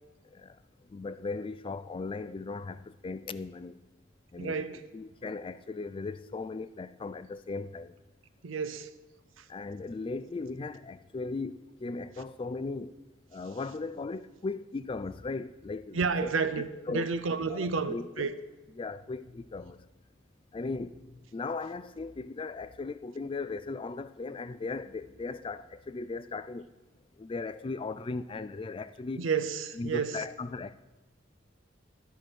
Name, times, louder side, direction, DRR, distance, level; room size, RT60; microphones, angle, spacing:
voice 1, 0.2-3.8 4.3-8.0 9.5-12.9 13.3-17.1 17.5-18.3 18.7-19.9 20.5-26.7 27.2-29.3 29.7-30.7, left 3 dB, 25° left, 0.3 m, -38 dB
voice 2, 4.4-4.8 8.4-8.9 9.4-9.5 15.9-18.3 29.2-30.2, right 5 dB, 80° right, 0.6 m, -31 dB
13.0 x 4.6 x 6.3 m
head